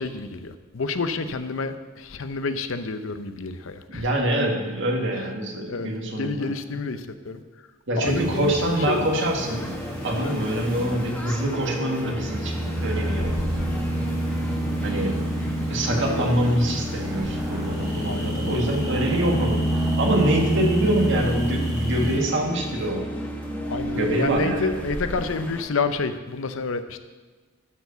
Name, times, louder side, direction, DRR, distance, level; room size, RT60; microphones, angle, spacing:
voice 1, 0.0-4.0 5.7-7.4 8.0-9.1 10.2-10.4 18.1-18.5 23.7-27.0, left 4 dB, 70° left, 10 dB, 0.7 m, -29 dB
voice 2, 3.9-6.5 7.9-9.7 10.0-13.4 14.8-15.2 15.7-19.6 20.0-23.0 23.9-24.9, right 1 dB, 65° right, 1 dB, 1.7 m, -25 dB
sound 1, 8.0-11.3 12.0-22.2, equal, 20° right, 2.1 m, -28 dB
sound 2, 9.4-25.6, right 1 dB, 5° left, 1.2 m, -34 dB
12.0 x 4.7 x 6.8 m, 1.3 s
head